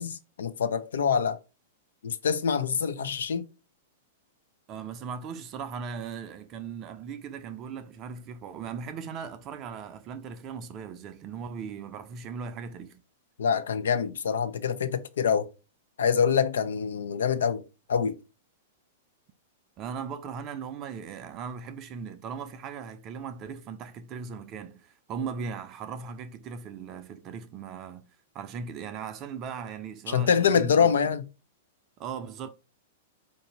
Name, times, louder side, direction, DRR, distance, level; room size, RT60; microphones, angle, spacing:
voice 1, 0.0-1.4 2.0-3.5 13.4-15.5 16.0-17.6 17.9-18.2 30.1-31.2, left 7 dB, 70° left, 0.5 m, -25 dB
voice 2, 4.7-13.0 19.8-28.1 28.3-31.0 32.0-32.5, right 6 dB, 35° right, 0.5 m, -38 dB
4.5 x 2.7 x 4.1 m
figure-of-eight pair, 100°, 0 cm